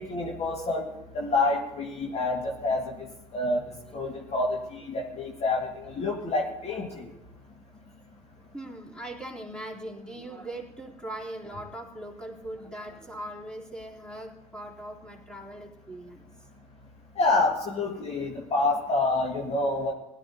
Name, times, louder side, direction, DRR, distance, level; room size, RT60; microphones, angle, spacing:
voice 1, 0.0-3.1 3.3-3.6 3.9-7.1 17.2-19.9, left 2 dB, 35° left, 0 dB, 1.9 m, -28 dB
voice 2, 3.7-4.6 5.6-5.7 6.7-7.0 8.5-16.3, right 1 dB, 5° left, -3 dB, 3.4 m, -41 dB
21.0 x 12.5 x 2.8 m, 0.96 s
figure-of-eight pair, 60°, 18 cm